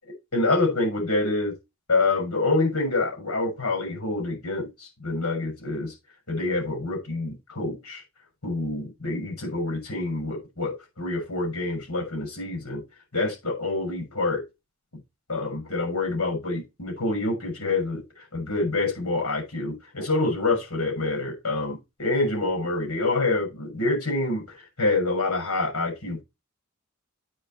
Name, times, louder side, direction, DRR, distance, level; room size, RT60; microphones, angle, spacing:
voice 1, 0.0-1.5 1.9-5.9 6.3-8.0 8.4-12.8 13.1-14.4 15.3-24.4 24.8-26.2, left 2 dB, 85° left, 6.4 m, -27 dB
9.1 x 5.5 x 4.4 m
head